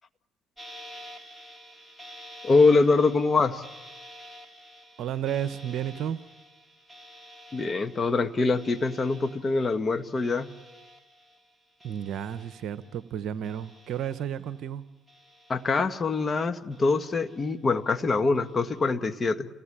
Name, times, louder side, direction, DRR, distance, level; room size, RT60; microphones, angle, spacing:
sound 1, 0.6-13.1 13.4-14.7 15.1-16.3 16.7-17.8 18.3-18.9, equal, ahead, 4.2 m, -50 dB
voice 1, 2.4-3.6 7.5-10.5 15.5-19.5, left 3 dB, 35° left, 10 dB, 1.6 m, -24 dB
voice 2, 5.0-6.2 11.8-14.8, right 9 dB, 65° right, 13 dB, 0.9 m, -32 dB
28.5 x 18.5 x 10.0 m, 1.1 s
supercardioid pair, 70°, 0 cm